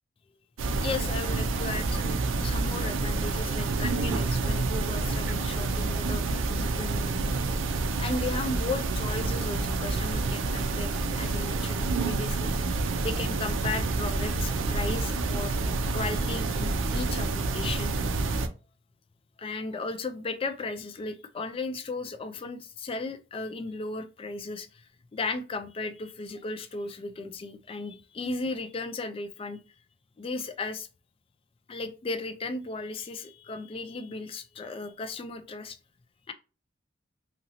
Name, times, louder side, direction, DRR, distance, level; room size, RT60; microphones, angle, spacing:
sound 1, 0.6-18.5, right 3 dB, 75° right, 0.4 m, -28 dB
voice 1, 0.8-7.3 8.0-12.7 13.0-15.6 15.9-17.9 19.4-24.9 25.1-29.6 30.2-30.9 31.7-35.8 36.3-36.4, left 3 dB, 30° left, 0.3 m, -35 dB
2.8 x 2.6 x 2.8 m
head